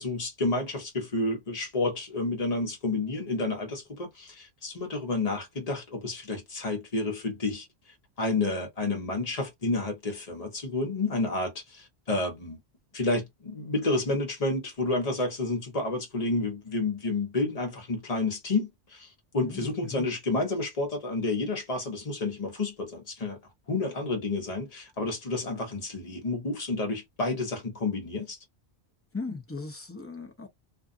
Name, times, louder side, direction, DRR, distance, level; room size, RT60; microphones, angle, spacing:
voice 1, 0.0-7.7 8.2-12.6 12.9-23.4 23.7-28.4, left 2 dB, 35° left, 1.1 m, -30 dB
voice 2, 19.4-20.1 29.1-30.5, left 3 dB, 20° left, 0.5 m, -38 dB
2.6 x 2.4 x 2.5 m
omnidirectional pair, 1.1 m